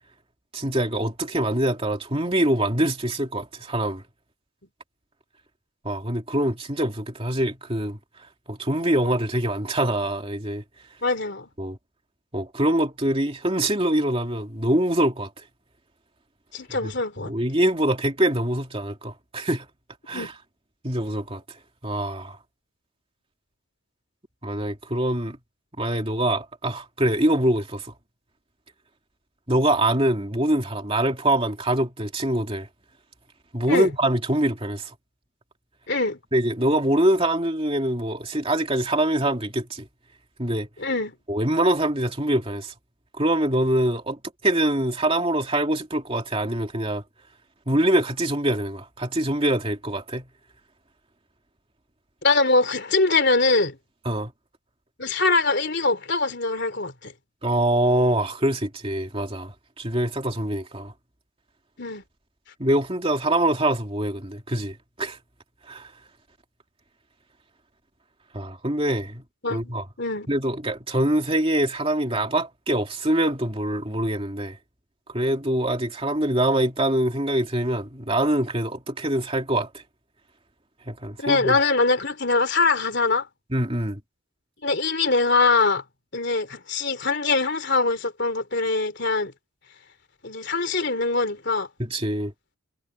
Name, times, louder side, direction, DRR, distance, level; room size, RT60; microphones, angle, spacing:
voice 1, 0.5-4.0 5.8-8.0 8.5-10.6 11.6-11.8 12.3-15.4 16.8-16.9 17.3-19.7 20.1-20.3 20.8-21.4 21.8-22.4 24.4-25.4 25.8-27.9 29.5-32.7 33.5-34.9 36.3-39.8 40.4-40.7 41.3-42.7 43.2-47.0 47.7-50.3 54.0-54.3 57.4-60.9 62.6-65.2 65.7-65.9 68.3-69.2 69.5-69.8 70.3-74.6 75.1-79.8 80.9-81.6 83.5-84.0 91.8-92.3, right 1 dB, 25° right, 2.7 m, -24 dB
voice 2, 11.0-11.5 16.5-17.3 20.1-20.3 33.7-33.9 35.9-36.2 40.8-41.1 52.2-53.8 55.0-57.1 61.8-62.0 69.4-69.7 70.0-70.3 81.2-83.3 84.6-85.8 86.1-89.3 90.2-91.7, left 3 dB, 50° left, 3.3 m, -23 dB
head